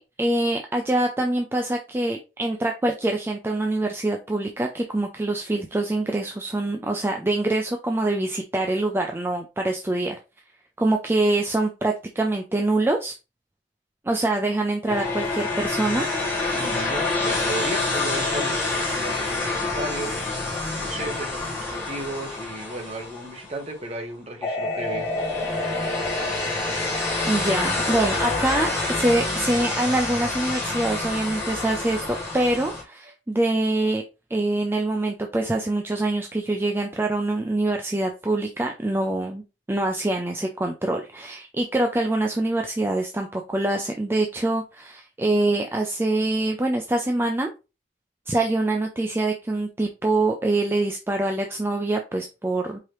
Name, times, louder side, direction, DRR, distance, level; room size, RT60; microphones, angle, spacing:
voice 1, 0.0-10.2 10.8-13.2 14.0-16.1 27.3-34.0 34.3-47.5 48.3-52.8, right 2 dB, 10° right, 0.4 m, -25 dB
sound 1, 14.9-23.7 24.4-32.8, left 2 dB, 15° left, 1.3 m, -27 dB
voice 2, 16.5-20.5 20.8-25.1, right 1 dB, 35° right, 0.9 m, -34 dB
4.8 x 2.8 x 3.0 m
head